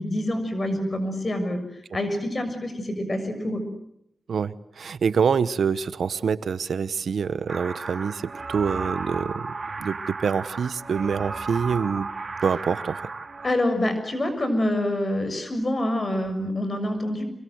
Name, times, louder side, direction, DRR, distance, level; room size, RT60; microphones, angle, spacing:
voice 1, 0.0-1.6 1.9-3.6 13.4-17.2, left 1 dB, 45° left, 9 dB, 6.7 m, -26 dB
voice 2, 4.3-9.5 9.8-12.1 12.4-13.0, right 6 dB, 80° right, 16 dB, 1.0 m, -26 dB
sound 1, 7.5-13.5, right 4 dB, 55° right, 3.3 m, -34 dB
26.5 x 24.0 x 8.0 m, 0.78 s
cardioid pair, 50°, 0 cm